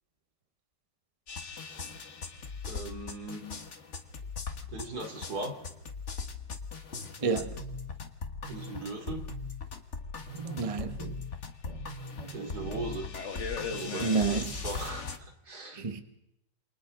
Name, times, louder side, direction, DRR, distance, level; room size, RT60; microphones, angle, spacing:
sound 1, 1.3-15.2, left 4 dB, 40° left, 1.7 m, -39 dB
voice 1, 2.7-3.5 4.7-5.6 8.5-9.2 12.3-13.1 13.7-15.1 15.5-15.8, right 2 dB, 60° right, 3 dB, 3.2 m, -38 dB
voice 2, 7.2-7.6 10.3-11.2 11.7-11.9 12.2-12.9 14.0-14.5 15.7-16.0, right 4 dB, 20° right, 8 dB, 1.0 m, -31 dB
28.0 x 24.0 x 3.8 m, 0.83 s
omnidirectional pair, 1.9 m